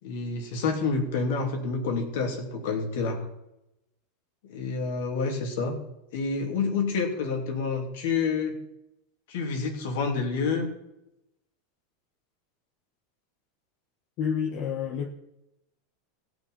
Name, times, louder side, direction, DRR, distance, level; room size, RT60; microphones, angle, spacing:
voice 1, 0.0-3.3 4.5-5.7 6.1-8.5 9.3-10.7, left 4 dB, 70° left, 2.8 m, -28 dB
voice 2, 14.2-15.1, left 7 dB, 55° left, 1.3 m, -29 dB
17.0 x 6.2 x 5.5 m
hypercardioid pair, 100°, 0 cm